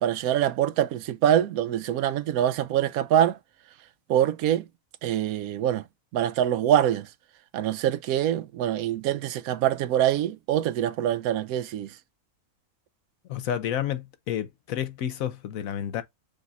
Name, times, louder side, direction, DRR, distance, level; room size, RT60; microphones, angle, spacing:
voice 1, 0.0-3.4 4.1-4.6 5.0-5.8 6.1-7.1 7.5-11.9, right 11 dB, 90° right, 1.0 m, -24 dB
voice 2, 13.3-16.0, left 10 dB, 75° left, 1.1 m, -30 dB
5.1 x 4.0 x 2.3 m
omnidirectional pair, 1.5 m